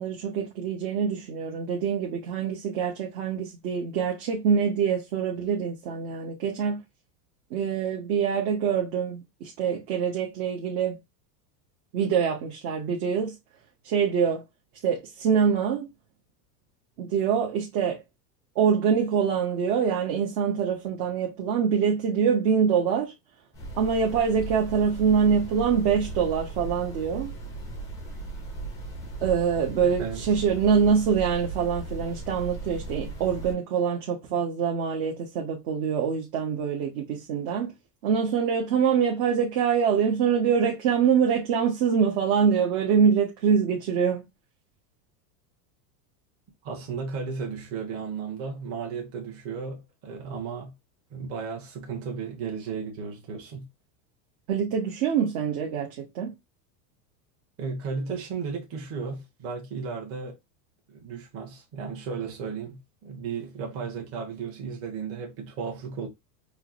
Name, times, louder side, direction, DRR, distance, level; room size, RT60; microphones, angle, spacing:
voice 1, 0.0-6.8 7.5-11.0 11.9-13.3 13.8-14.4 14.8-15.9 17.0-18.0 18.6-23.1 23.8-27.3 29.2-37.7 38.0-44.2 54.5-56.3, right 7 dB, 50° right, 0.9 m, -25 dB
sound 1, 23.5-33.5, right 3 dB, 10° left, 0.4 m, -37 dB
voice 2, 46.6-50.7 51.1-53.7 57.6-60.4 60.9-66.1, right 5 dB, 30° right, 1.0 m, -34 dB
4.5 x 2.0 x 2.5 m
supercardioid pair, 145°, 49 cm